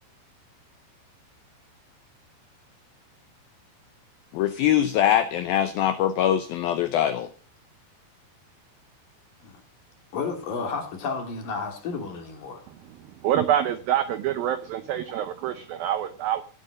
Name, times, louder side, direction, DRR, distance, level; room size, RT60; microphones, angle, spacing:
voice 1, 4.3-7.3, left 10 dB, 85° left, 2.1 m, -23 dB
voice 2, 10.1-12.6, left 4 dB, 50° left, 4.1 m, -32 dB
voice 3, 13.2-16.4, right 10 dB, 90° right, 2.0 m, -26 dB
18.0 x 8.1 x 6.4 m
omnidirectional pair, 5.4 m